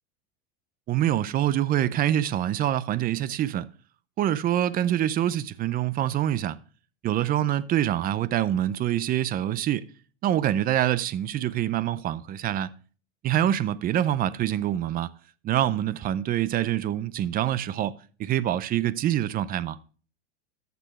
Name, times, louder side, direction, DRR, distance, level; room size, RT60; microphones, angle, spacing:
voice 1, 0.9-3.7 4.2-6.6 7.0-9.9 10.2-12.7 13.2-15.1 15.4-19.8, right 11 dB, 30° right, 0.5 m, -25 dB
14.0 x 6.9 x 3.1 m
supercardioid pair, 130°, 31 cm